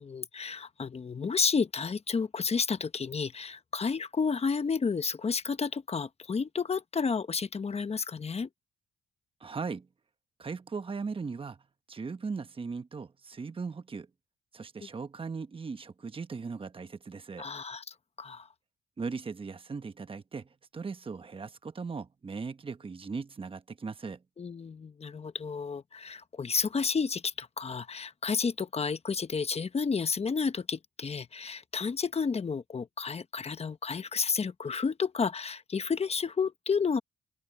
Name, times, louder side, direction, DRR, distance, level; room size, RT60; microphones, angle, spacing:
voice 1, 0.0-8.5 17.4-18.5 24.4-37.0, left 5 dB, 30° left, 1.0 m, -31 dB
voice 2, 9.4-9.9 10.4-11.6 11.9-14.1 14.5-17.5 19.0-24.2, right 4 dB, 25° right, 1.1 m, -38 dB
cardioid pair, 90°, 20 cm